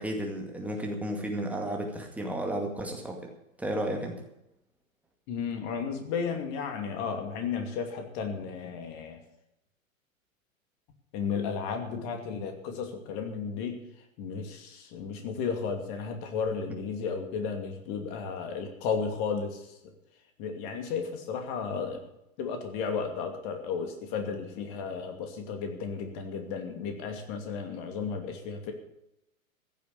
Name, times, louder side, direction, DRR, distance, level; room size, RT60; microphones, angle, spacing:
voice 1, 0.0-3.3 3.6-4.2, right 1 dB, 5° right, 1 dB, 2.2 m, -33 dB
voice 2, 5.3-9.2 11.1-13.8 14.2-19.7 20.4-22.0 22.4-28.7, left 5 dB, 35° left, 5 dB, 2.6 m, -33 dB
15.5 x 7.3 x 8.7 m, 0.86 s
figure-of-eight pair, 110°, 42 cm